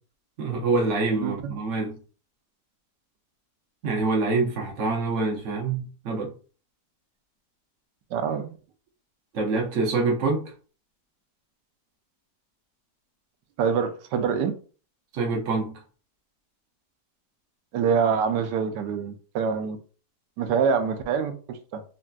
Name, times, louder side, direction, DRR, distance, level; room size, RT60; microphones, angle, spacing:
voice 1, 0.4-2.0 3.8-6.3 9.3-10.4 15.1-15.8, right 3 dB, 55° right, 0.9 m, -25 dB
voice 2, 1.2-1.5 8.1-8.5 13.6-14.5 17.7-19.8 20.4-21.8, right 6 dB, 85° right, 1.2 m, -25 dB
3.2 x 2.6 x 2.2 m
omnidirectional pair, 1.8 m